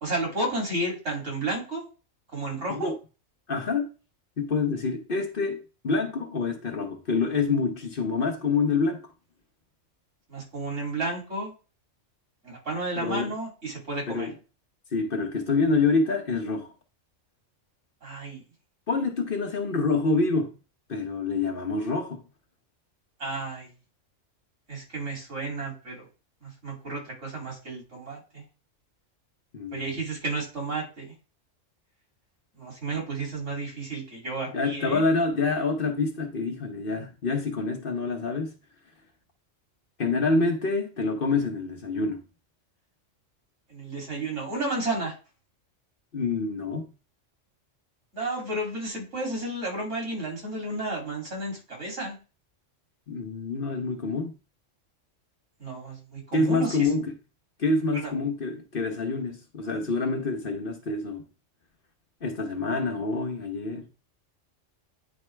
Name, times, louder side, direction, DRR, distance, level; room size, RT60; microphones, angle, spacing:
voice 1, 0.0-1.8 2.3-2.9 10.3-11.5 12.4-14.3 18.0-18.4 23.2-23.7 24.7-26.1 26.4-28.4 29.7-31.1 32.6-35.1 43.7-45.1 48.1-52.2 55.6-56.9 57.9-58.1, right 2 dB, 75° right, 3.2 m, -32 dB
voice 2, 3.5-3.9 4.4-5.6 5.8-9.0 13.0-13.3 14.1-14.3 14.9-16.7 18.9-20.5 20.9-22.2 29.5-30.0 34.5-38.5 40.0-42.2 46.1-46.9 53.1-54.3 56.3-57.1 57.6-61.2 62.2-63.9, left 3 dB, 50° left, 1.0 m, -27 dB
9.1 x 4.3 x 3.3 m
omnidirectional pair, 1.3 m